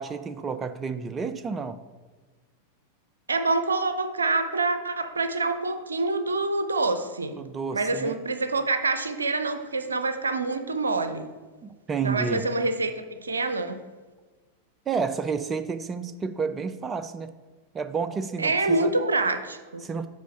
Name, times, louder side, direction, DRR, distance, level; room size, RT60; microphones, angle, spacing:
voice 1, 0.0-1.8 7.4-8.1 11.6-12.4 14.9-17.3 17.7-18.9 19.8-20.1, right 5 dB, 20° right, 11 dB, 0.3 m, -30 dB
voice 2, 3.3-7.4 7.7-11.3 12.0-13.8 18.4-19.9, right 3 dB, 75° right, 9 dB, 0.5 m, -26 dB
6.2 x 4.2 x 5.3 m, 1.3 s
figure-of-eight pair, 90°, 0 cm